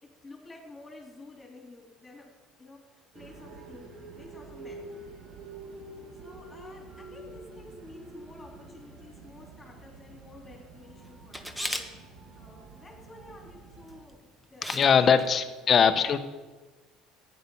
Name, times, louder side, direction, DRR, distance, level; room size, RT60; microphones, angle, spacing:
voice 1, 0.0-4.9 6.2-15.2, left 2 dB, 20° left, -1 dB, 3.3 m, -51 dB
sound 1, 3.1-14.0, right 2 dB, 55° right, 2.5 m, -47 dB
Camera, 11.3-11.9 13.9-14.1 14.6-14.9 15.2-15.3, equal, 5° right, 1.4 m, -34 dB
voice 2, 14.7-16.2, left 7 dB, 40° left, 9 dB, 1.0 m, -21 dB
14.0 x 9.6 x 5.6 m, 1.3 s
supercardioid pair, 85°, 0 cm